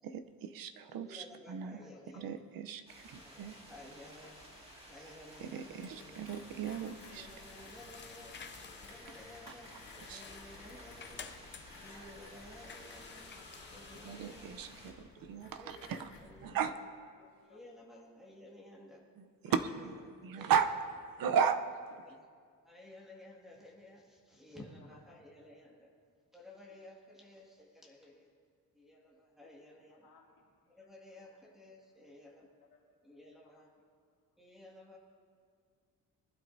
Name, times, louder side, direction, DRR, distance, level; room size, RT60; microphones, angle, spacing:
voice 1, 0.0-1.8 2.2-3.6 5.4-7.3 10.0-10.2 11.9-12.1 14.0-16.1 16.4-16.7 19.2-19.3 19.5-19.6 19.8-19.9 20.2-20.7 21.2-22.0, right 7 dB, 70° right, 10 dB, 0.8 m, -35 dB
voice 2, 0.9-2.4 3.1-4.4 4.9-6.3 6.9-8.4 8.8-9.7 10.1-11.3 11.8-13.2 13.7-14.9 15.5-16.8 17.5-19.0 19.4-19.5 19.8-19.9 20.2-20.6 22.1-22.3 22.6-25.9 26.3-28.3 28.7-30.1 30.7-32.5 33.0-33.7 34.4-35.0, left 1 dB, ahead, -3 dB, 2.0 m, -55 dB
voice 3, 1.4-2.0 4.2-4.5 5.3-5.4 12.2-12.5 13.3-14.1 14.6-14.7 15.1-15.5 16.4-16.5 17.2-18.0 18.7-18.8 19.5-19.6 20.4-20.5 24.7-25.2 29.4-29.6 29.9-30.8 31.2-31.3 32.6-33.0 33.4-33.6, left 5 dB, 70° left, 0 dB, 2.1 m, -64 dB
sound 1, 2.9-14.9, equal, 15° right, 2.0 m, -55 dB
Mechanisms, 5.8-16.2, left 4 dB, 50° left, 2.7 m, -57 dB
sound 2, 6.4-16.6, left 6 dB, 30° left, 0.5 m, -54 dB
20.5 x 12.0 x 2.7 m, 2.1 s
wide cardioid pair, 165°, 35 cm